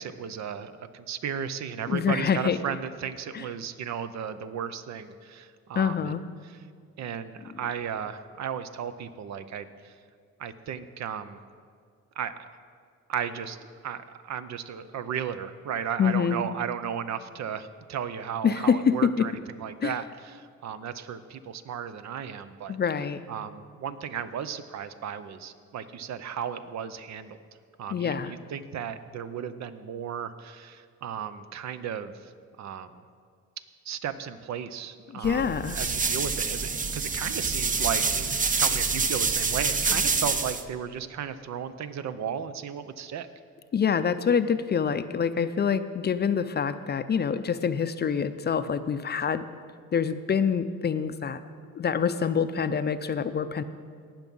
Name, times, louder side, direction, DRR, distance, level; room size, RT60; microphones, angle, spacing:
voice 1, 0.0-6.6 7.0-9.9 10.4-11.4 12.2-12.3 13.1-22.8 23.3-27.4 27.8-32.3 32.6-33.0 33.8-43.3, right 8 dB, 65° right, 12 dB, 0.7 m, -35 dB
voice 2, 1.9-2.6 3.3-3.4 5.8-6.2 16.0-16.4 18.4-19.2 19.8-19.9 22.7-23.2 27.9-28.3 35.1-35.8 43.7-49.5 49.9-51.4 51.8-53.6, left 7 dB, 35° left, 12 dB, 0.5 m, -26 dB
sound 1, 35.2-40.6, right 4 dB, 25° right, 0.6 m, -27 dB
17.5 x 6.0 x 5.4 m, 2.1 s
cardioid pair, 90°, 30 cm